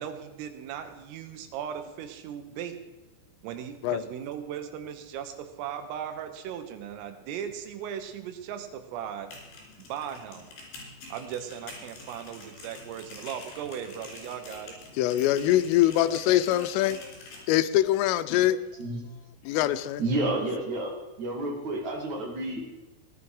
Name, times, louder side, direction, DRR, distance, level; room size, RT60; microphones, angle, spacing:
voice 1, 0.0-2.8 3.4-9.3 9.8-10.5 11.1-14.8, right 9 dB, 90° right, 8 dB, 3.9 m, -37 dB
sound 1, 9.1-17.4, left 2 dB, 65° left, 6.0 m, -47 dB
voice 2, 15.0-17.2 17.5-18.6 19.5-20.0, left 13 dB, 85° left, 13 dB, 3.2 m, -23 dB
voice 3, 20.0-20.9 21.2-22.6, right 2 dB, 45° right, 0 dB, 2.9 m, -30 dB
17.5 x 11.0 x 4.9 m, 1.1 s
omnidirectional pair, 5.8 m